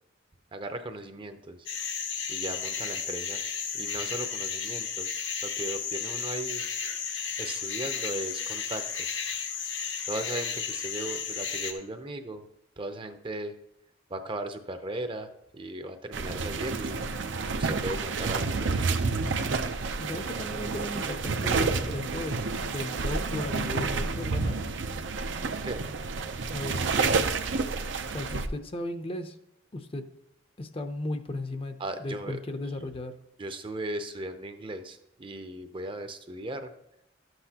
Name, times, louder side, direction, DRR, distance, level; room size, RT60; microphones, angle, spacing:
voice 1, 0.5-1.7 2.3-3.4 3.7-6.6 7.4-9.2 10.1-12.4 12.8-13.5 14.1-17.2 17.5-19.0 25.6-25.9 31.8-32.4 33.4-36.7, right 1 dB, 25° right, 8 dB, 0.6 m, -37 dB
sound 1, 1.7-11.7, left 6 dB, 75° left, 1.2 m, -33 dB
sound 2, 16.1-28.5, right 4 dB, 75° right, 0.6 m, -29 dB
voice 2, 20.0-24.6 26.5-27.2 28.1-29.4 29.7-30.0 30.6-33.1, left 1 dB, 30° left, 8 dB, 0.6 m, -36 dB
12.5 x 7.9 x 2.9 m, 0.83 s
head